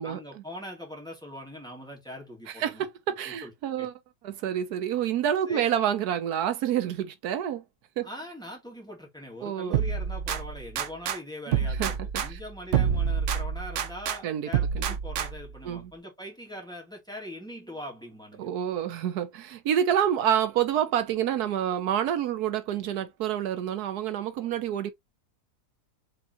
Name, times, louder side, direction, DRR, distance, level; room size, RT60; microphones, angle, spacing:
voice 1, 0.0-2.9 3.3-3.5 3.8-3.9 5.5-5.7 8.0-18.5, left 1 dB, 5° left, 2.0 m, -42 dB
voice 2, 2.6-3.9 4.2-7.6 8.0-8.1 9.4-9.8 11.5-11.9 14.2-14.5 14.7-14.8 15.6-15.9 18.4-24.9, right 10 dB, 80° right, 1.3 m, -28 dB
sound 1, 9.7-11.2 11.5-14.2 14.5-15.6, right 8 dB, 60° right, 0.9 m, -28 dB
4.8 x 3.6 x 2.9 m
omnidirectional pair, 1.6 m